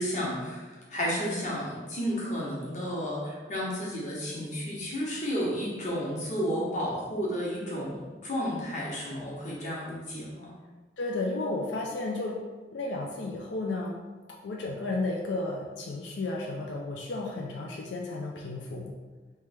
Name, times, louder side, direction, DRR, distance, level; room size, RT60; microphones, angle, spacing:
voice 1, 0.0-10.5, equal, 40° left, -5 dB, 1.0 m, -32 dB
voice 2, 11.0-12.4 12.7-14.0 14.4-18.9, left 2 dB, 85° left, -1 dB, 0.4 m, -33 dB
3.2 x 3.2 x 3.4 m, 1.3 s
head